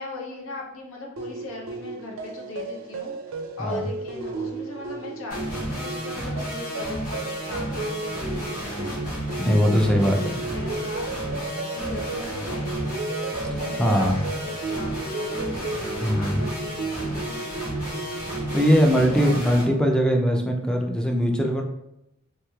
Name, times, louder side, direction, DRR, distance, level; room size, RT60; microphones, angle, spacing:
voice 1, 0.0-9.1 9.4-11.1 11.7-13.0 13.5-14.1 14.4-14.9 15.2-17.4 18.9-19.8, left 3 dB, 85° left, 0 dB, 0.6 m, -39 dB
sound 1, 1.2-18.7, right 3 dB, 90° right, 0.4 m, -34 dB
sound 2, 5.3-19.6, equal, 40° left, 1.5 m, -32 dB
voice 2, 9.4-10.4 13.8-14.2 16.0-16.5 18.2-21.6, equal, 5° left, 2 dB, 0.3 m, -21 dB
3.2 x 3.1 x 2.3 m, 0.87 s
head